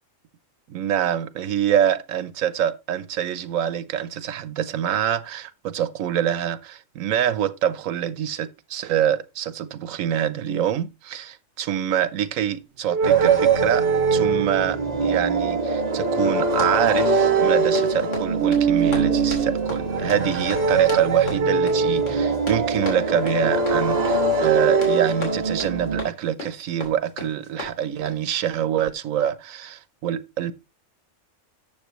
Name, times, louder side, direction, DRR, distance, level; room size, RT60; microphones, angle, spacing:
voice 1, 0.7-30.5, right 10 dB, 90° right, 1.1 m, -25 dB
sound 1, 12.9-14.7 16.0-16.8 17.0-18.0 18.4-19.6 20.5-22.4 23.4-25.1, right 8 dB, 65° right, 0.8 m, -22 dB
sound 2, 13.0-26.0, right 1 dB, 30° right, 1.4 m, -25 dB
Run, 16.4-28.3, left 2 dB, 70° left, 3.2 m, -38 dB
12.0 x 7.2 x 3.0 m
omnidirectional pair, 1.3 m